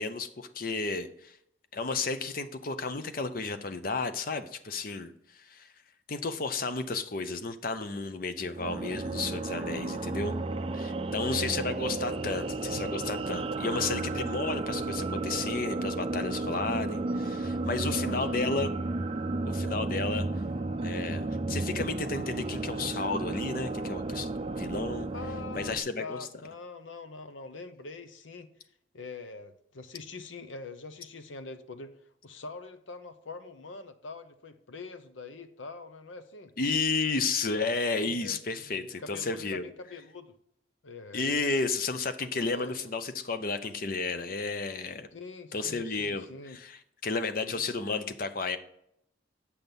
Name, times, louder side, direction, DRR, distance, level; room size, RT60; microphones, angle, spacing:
voice 1, 0.0-1.4 1.7-5.7 6.1-10.4 10.7-18.7 19.5-20.3 20.8-25.1 25.5-26.2 36.6-39.7 41.1-45.1 45.5-48.6, left 3 dB, 50° left, 0.7 m, -32 dB
sound 1, 8.5-25.8, right 2 dB, 30° right, 0.4 m, -33 dB
voice 2, 9.8-10.4 11.0-11.7 17.8-18.4 25.1-28.5 28.9-36.5 38.0-40.3 40.8-41.3 42.5-42.7 45.1-46.6 47.4-47.7, left 3 dB, 85° left, 0.9 m, -44 dB
8.4 x 6.0 x 5.3 m
head